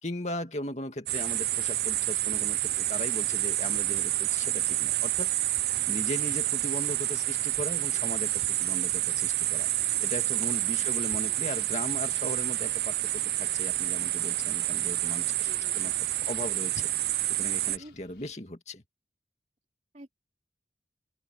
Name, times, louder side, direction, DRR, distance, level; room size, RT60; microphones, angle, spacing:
voice 1, 0.0-5.3 5.8-9.7 10.0-13.0 13.4-15.9 16.3-16.9 17.3-18.8, left 1 dB, 40° left, 2.3 m, -38 dB
sound 1, 1.1-17.8, right 15 dB, 65° right, 0.5 m, -28 dB
sound 2, 2.5-18.3, left 2 dB, 75° left, 4.6 m, -59 dB
voice 2, 10.7-11.4 11.8-11.9 15.3-15.9 17.8-18.0 19.9-20.1, right 1 dB, 40° right, 3.7 m, -51 dB
open air
head